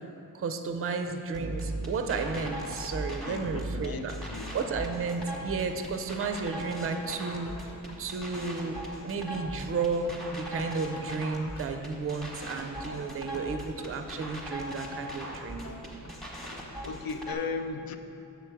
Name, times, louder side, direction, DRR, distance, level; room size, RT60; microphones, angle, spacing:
voice 1, 0.3-4.1 4.5-15.7, right 4 dB, 35° right, 6 dB, 0.4 m, -33 dB
sound 1, 1.3-17.3, right 1 dB, ahead, 0.9 m, -39 dB
sound 2, 2.1-3.5 3.9-6.3 7.0-9.1 9.4-11.9 12.4-14.6 15.1-16.8, left 2 dB, 45° left, 0.8 m, -50 dB
voice 2, 3.3-4.5 16.8-18.0, left 4 dB, 70° left, 8 dB, 0.5 m, -36 dB
6.9 x 4.5 x 6.0 m, 2.8 s
wide cardioid pair, 170°, 38 cm